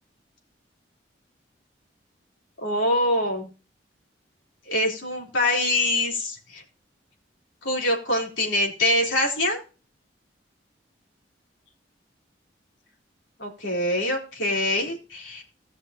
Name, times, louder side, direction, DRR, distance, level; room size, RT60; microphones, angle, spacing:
voice 1, 2.6-3.5 4.7-6.6 7.6-9.6 13.4-15.4, left 1 dB, 85° left, -1 dB, 3.7 m, -24 dB
17.5 x 6.5 x 2.9 m, 0.34 s
head